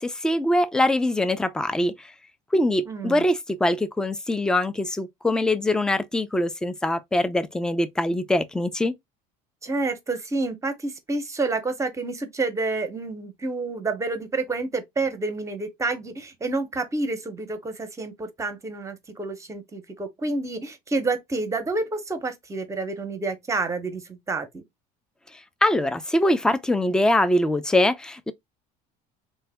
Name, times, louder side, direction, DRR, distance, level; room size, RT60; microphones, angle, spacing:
voice 1, 0.0-2.1 2.5-8.9 25.6-28.3, left 1 dB, 5° left, 0.3 m, -23 dB
voice 2, 2.9-3.2 9.6-24.6, right 3 dB, 15° right, 0.7 m, -29 dB
3.2 x 2.1 x 3.3 m
supercardioid pair, 115°, 18 cm